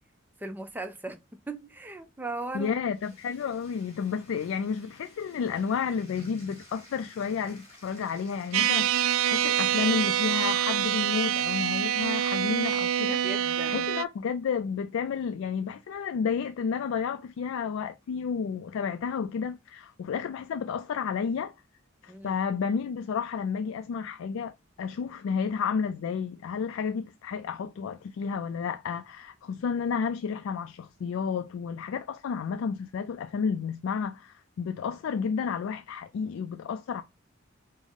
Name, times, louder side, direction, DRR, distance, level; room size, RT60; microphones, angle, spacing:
voice 1, 0.4-2.8 13.2-13.9 22.1-22.4, right 2 dB, 10° right, 0.4 m, -38 dB
voice 2, 2.5-21.5 22.0-37.0, left 6 dB, 75° left, 0.3 m, -31 dB
Bathtub (filling or washing), 2.5-12.6, left 1 dB, 30° left, 1.7 m, -54 dB
sound 1, 8.5-14.0, right 10 dB, 85° right, 0.3 m, -26 dB
5.4 x 2.0 x 3.5 m
head